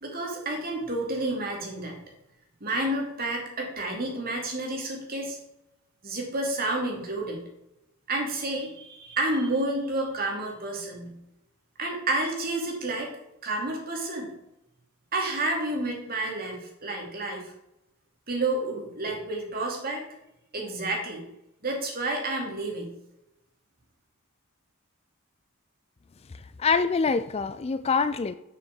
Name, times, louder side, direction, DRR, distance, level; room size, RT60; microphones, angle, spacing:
voice 1, 0.0-2.0 2.6-5.4 6.0-7.4 8.1-11.1 11.8-13.1 13.4-14.3 15.1-17.4 18.3-20.1 20.5-21.2 21.6-22.9, right 2 dB, 45° right, 0 dB, 2.7 m, -30 dB
voice 2, 26.6-28.4, left 5 dB, 30° left, 13 dB, 0.3 m, -25 dB
7.3 x 6.4 x 7.1 m, 0.87 s
head